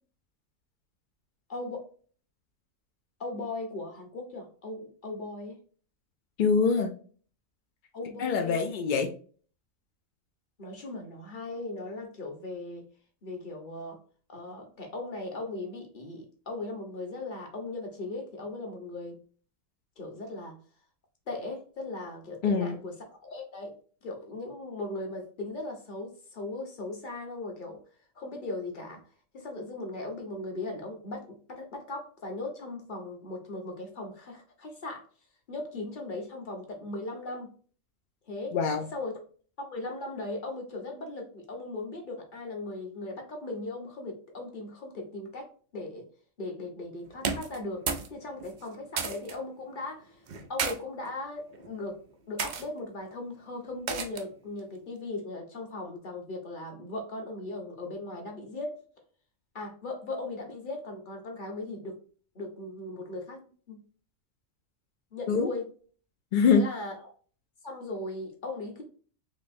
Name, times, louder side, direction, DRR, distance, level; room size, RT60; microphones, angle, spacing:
voice 1, 1.5-1.8 3.2-5.5 7.9-8.6 10.6-12.9 13.2-14.0 14.3-19.2 20.0-20.6 21.3-22.9 23.2-23.7 24.0-27.8 28.2-29.0 29.3-35.0 35.5-37.5 38.3-38.6 38.9-39.1 39.6-46.1 46.4-50.2 50.5-52.0 52.3-58.8 59.5-62.0 62.3-63.8 65.1-65.7 66.5-67.0 67.6-68.8, left 2 dB, 40° left, 1 dB, 1.1 m, -38 dB
voice 2, 6.4-6.9 8.2-9.1 22.4-22.8 38.5-38.9 65.3-65.5 66.3-66.6, left 5 dB, 65° left, 4 dB, 0.5 m, -24 dB
sound 1, 47.2-48.1 48.4-49.4 50.3-50.8 51.5-51.8 52.4-52.7 53.9-54.4, right 5 dB, 75° right, 0.4 m, -32 dB
4.4 x 2.9 x 2.6 m, 0.43 s
omnidirectional pair, 1.4 m